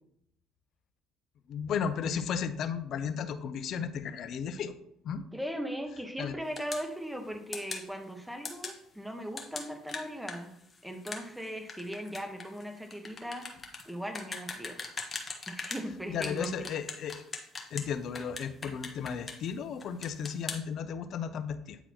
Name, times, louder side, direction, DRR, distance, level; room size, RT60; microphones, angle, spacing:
voice 1, 1.5-4.7 5.0-5.2 6.2-6.3 16.1-17.2 17.7-21.8, left 7 dB, 60° left, 11 dB, 0.6 m, -34 dB
voice 2, 5.3-10.5 10.8-13.5 13.8-14.8 15.5-16.7, equal, 5° right, 5 dB, 1.2 m, -38 dB
sound 1, 6.6-6.9 7.5-7.9 8.5-8.8 9.4-15.9 16.2-17.9 18.2-19.5 19.8-20.6, left 4 dB, 30° left, 1.2 m, -40 dB
9.1 x 4.0 x 3.0 m, 0.72 s
supercardioid pair, 80°, 0 cm